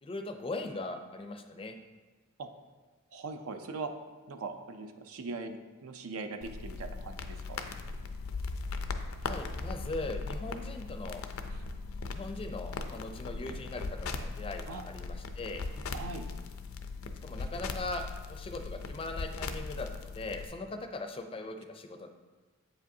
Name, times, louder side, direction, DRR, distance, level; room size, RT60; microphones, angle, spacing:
voice 1, 0.0-1.8 9.2-11.2 12.1-15.6 17.2-22.1, left 2 dB, 25° left, 6 dB, 0.4 m, -40 dB
voice 2, 3.1-3.9 4.3-7.2 7.5-7.6 14.7-14.9 15.9-16.3, right 4 dB, 80° right, 7 dB, 0.5 m, -40 dB
sound 1, 6.4-20.5, left 3 dB, 80° left, 0.4 m, -39 dB
7.7 x 5.0 x 2.7 m, 1.3 s
head